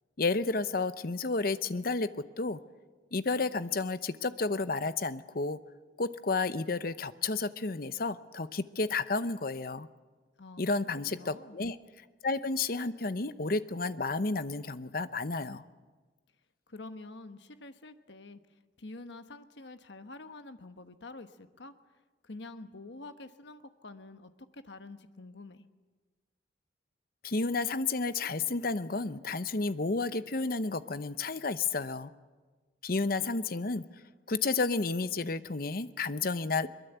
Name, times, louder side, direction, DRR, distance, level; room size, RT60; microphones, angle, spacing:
voice 1, 0.2-2.1 2.4-2.6 3.1-5.6 6.0-9.9 10.6-11.8 12.2-15.6 27.2-32.1 32.8-33.8 34.3-36.7, left 3 dB, 50° left, 13 dB, 0.8 m, -31 dB
voice 2, 10.4-11.6 16.7-18.4 18.8-21.7 22.2-25.7, left 2 dB, 70° left, 9 dB, 1.2 m, -47 dB
22.5 x 21.5 x 8.1 m, 1.4 s
head